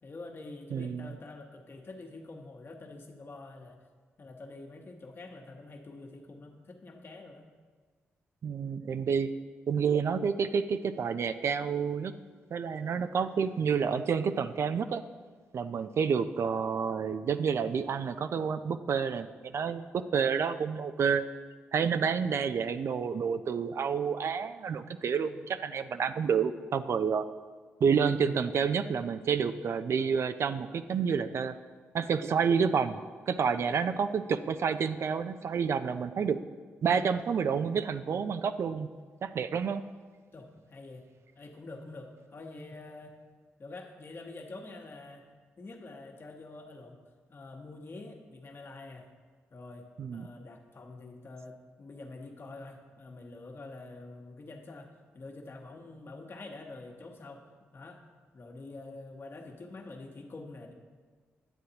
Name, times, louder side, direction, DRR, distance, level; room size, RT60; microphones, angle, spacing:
voice 1, 0.0-3.8 4.2-7.5 40.3-41.0 41.4-43.1 43.6-45.3 45.6-47.0 47.3-49.1 49.5-57.4 57.7-58.0 58.3-60.7, left 2 dB, 50° left, 3 dB, 1.2 m, -46 dB
voice 2, 0.7-1.1 8.4-9.3 9.7-12.1 12.5-15.0 15.5-21.2 21.7-27.2 27.8-31.5 31.9-33.0 33.3-36.4 36.8-38.9 39.2-39.8 50.0-50.3, right 6 dB, 60° right, 11 dB, 0.4 m, -29 dB
9.9 x 7.7 x 2.9 m, 1.5 s
supercardioid pair, 55°, 5 cm